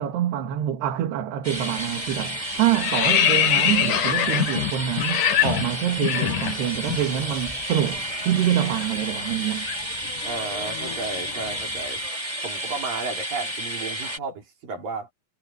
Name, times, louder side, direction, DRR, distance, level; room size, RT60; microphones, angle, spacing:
voice 1, 0.0-9.7, right 11 dB, 85° right, 3.9 m, -26 dB
sound 1, 1.4-14.2, right 1 dB, 10° right, 3.9 m, -31 dB
sound 2, 1.5-1.8 2.1-7.1 7.3-7.5 7.8-11.9, left 10 dB, 60° left, 2.7 m, -25 dB
voice 2, 10.2-12.0 12.4-15.1, right 4 dB, 60° right, 5.8 m, -33 dB
omnidirectional pair, 4.6 m